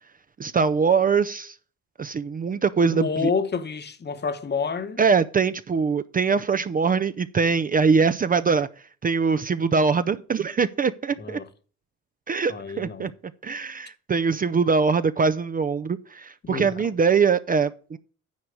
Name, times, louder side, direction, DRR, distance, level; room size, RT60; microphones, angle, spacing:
voice 1, 0.4-1.6 2.0-3.3 5.0-8.7 9.0-11.4 12.3-13.1 13.4-18.0, right 5 dB, 30° right, 0.5 m, -22 dB
voice 2, 2.9-5.0 11.2-11.5 12.5-13.1 16.4-16.7, left 5 dB, 35° left, 1.0 m, -28 dB
9.5 x 4.7 x 6.5 m
cardioid pair, 90°, 30 cm